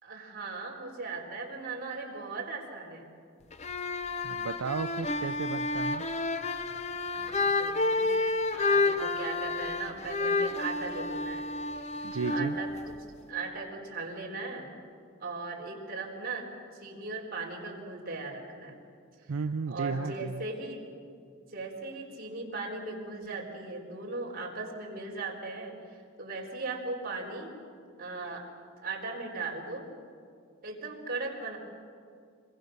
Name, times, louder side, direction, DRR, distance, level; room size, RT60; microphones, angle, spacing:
voice 1, 0.0-3.0 7.1-11.4 12.0-12.9 13.3-14.7 15.2-18.8 19.2-19.3 19.7-20.8 21.5-27.5 28.0-28.5 28.8-29.9 30.6-31.6, right 3 dB, 45° right, -1 dB, 4.2 m, -38 dB
sound 1, 3.5-13.3, left 3 dB, 30° left, 0.8 m, -30 dB
voice 2, 4.2-6.0 12.0-12.6 19.3-20.4, right 5 dB, 85° right, 10 dB, 0.5 m, -34 dB
26.5 x 23.0 x 6.6 m, 2.4 s
head